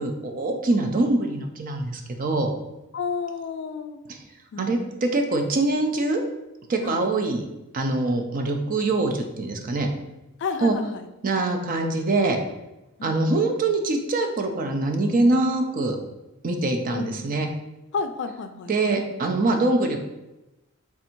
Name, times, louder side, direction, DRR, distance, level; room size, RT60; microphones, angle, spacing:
voice 1, 0.0-2.5 4.1-4.2 4.6-6.2 6.7-7.5 7.7-9.9 10.6-10.8 11.2-12.4 13.0-16.0 16.4-17.5 18.7-20.0, right 2 dB, 40° right, 4 dB, 0.5 m, -24 dB
voice 2, 2.9-4.0 4.5-4.8 6.8-7.0 10.4-11.1 13.0-13.2 16.9-17.3 17.9-18.9, left 5 dB, 60° left, 8 dB, 0.3 m, -31 dB
3.4 x 2.6 x 4.3 m, 0.96 s
head